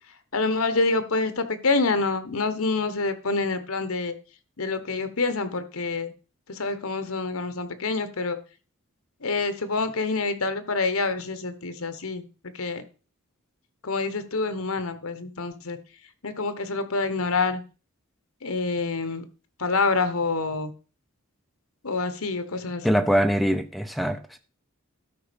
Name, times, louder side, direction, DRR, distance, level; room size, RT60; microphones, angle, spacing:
voice 1, 0.3-4.1 4.6-6.1 6.5-8.4 9.2-12.8 13.8-15.8 16.2-17.6 18.4-19.2 19.6-20.7 21.8-23.0, left 3 dB, 75° left, 11 dB, 1.2 m, -27 dB
voice 2, 22.8-24.4, equal, ahead, 8 dB, 0.7 m, -23 dB
12.5 x 5.3 x 5.2 m, 0.35 s
head